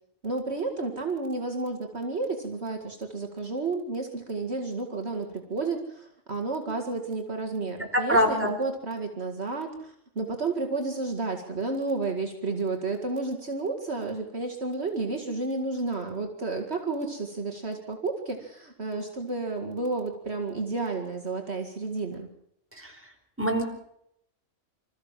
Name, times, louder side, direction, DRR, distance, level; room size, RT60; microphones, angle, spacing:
voice 1, 0.2-22.3, right 3 dB, 60° right, 3 dB, 2.5 m, -31 dB
voice 2, 7.9-8.5 22.8-23.0 23.4-23.6, equal, 10° right, 2 dB, 4.5 m, -23 dB
26.5 x 14.5 x 7.5 m, 0.74 s
omnidirectional pair, 1.3 m